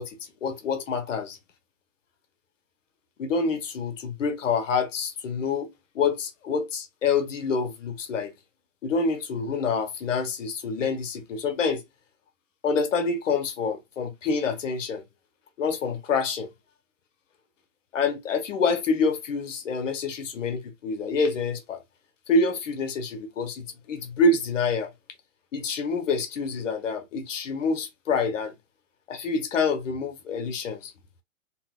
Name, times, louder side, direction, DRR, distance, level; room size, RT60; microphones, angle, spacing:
voice 1, 0.0-1.4 3.2-8.3 8.8-11.8 12.6-15.0 15.6-16.5 17.9-21.8 22.3-24.9 25.5-28.5 29.1-30.9, left 4 dB, 70° left, 1.2 m, -27 dB
4.5 x 2.2 x 2.3 m
hypercardioid pair, 160°, 39 cm